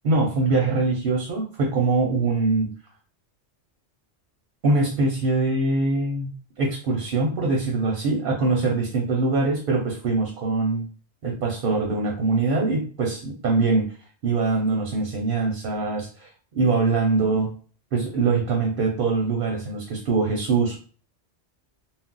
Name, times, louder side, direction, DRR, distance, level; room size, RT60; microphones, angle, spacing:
voice 1, 0.0-2.7 4.6-6.3 6.6-10.9 11.2-13.9 14.2-16.3 16.5-17.5 17.9-20.8, right 3 dB, 55° right, 0 dB, 0.7 m, -23 dB
2.3 x 2.0 x 3.8 m, 0.40 s
omnidirectional pair, 1.2 m